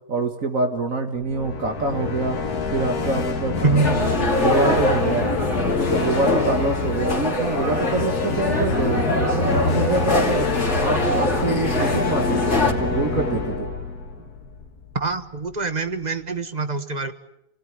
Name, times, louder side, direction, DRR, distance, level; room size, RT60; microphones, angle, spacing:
voice 1, 0.1-2.4 2.7-5.3 5.7-13.7, right 3 dB, 60° right, 5 dB, 1.9 m, -26 dB
sound 1, 1.2-15.2, left 4 dB, 70° left, 2.4 m, -26 dB
voice 2, 3.6-4.1 14.9-17.1, right 3 dB, 30° right, 10 dB, 1.3 m, -24 dB
sound 2, 3.8-12.7, left 2 dB, 45° left, 2.9 m, -23 dB
29.5 x 18.0 x 9.5 m, 0.83 s
omnidirectional pair, 1.6 m